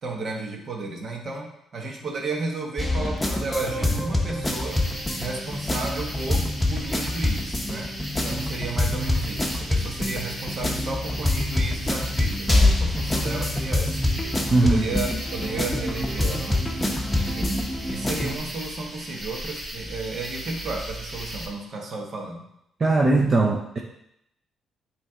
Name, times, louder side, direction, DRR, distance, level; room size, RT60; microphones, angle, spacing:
voice 1, 0.0-4.9 5.2-7.9 8.2-14.1 14.5-16.7 17.1-17.6 17.9-22.4, right 3 dB, 55° right, 0 dB, 1.4 m, -33 dB
sound 1, 2.8-18.4, left 1 dB, 10° left, 0.9 m, -25 dB
sound 2, 4.4-21.5, right 1 dB, 20° right, 1.8 m, -37 dB
voice 2, 14.5-14.9 22.8-23.8, right 2 dB, 35° right, -1 dB, 0.7 m, -20 dB
8.0 x 3.2 x 3.7 m, 0.78 s
cardioid pair, 90°, 0 cm